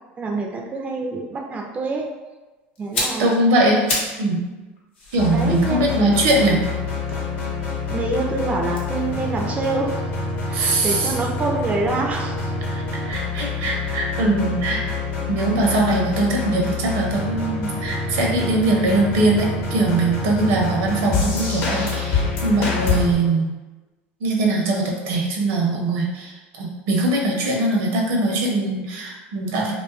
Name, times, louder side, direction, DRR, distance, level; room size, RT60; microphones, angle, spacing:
voice 1, 0.2-2.1 2.8-3.3 5.3-5.8 7.9-10.0 10.5-12.5, right 3 dB, 20° right, 1 dB, 0.3 m, -26 dB
sound 1, 2.8-4.3 4.6-7.8 8.6-10.7 11.0-11.1, left 2 dB, 90° left, 0.6 m, -32 dB
voice 2, 3.2-3.8 4.2-4.4 5.1-6.6 10.5-11.1 12.7-14.9 15.3-23.5 24.2-29.7, right 2 dB, 70° right, -1 dB, 0.6 m, -21 dB
sound 2, 5.2-23.1, left 4 dB, 55° left, 0.8 m, -26 dB
2.4 x 2.3 x 2.3 m, 1.2 s
hypercardioid pair, 85°, 6 cm